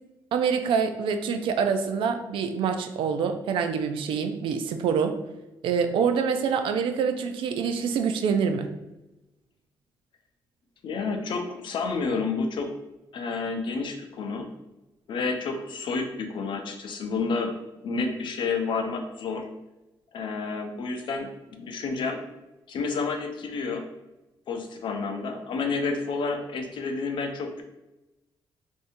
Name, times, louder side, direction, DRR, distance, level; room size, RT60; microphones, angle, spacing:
voice 1, 0.3-5.2 5.6-8.7, right 6 dB, 80° right, 8 dB, 0.3 m, -26 dB
voice 2, 10.8-12.7 13.1-14.5 15.1-17.5 17.8-19.5 20.1-22.2 22.7-23.9 24.5-27.6, left 4 dB, 70° left, 5 dB, 0.5 m, -30 dB
3.5 x 2.6 x 2.6 m, 0.98 s
cardioid pair, 75°, 9 cm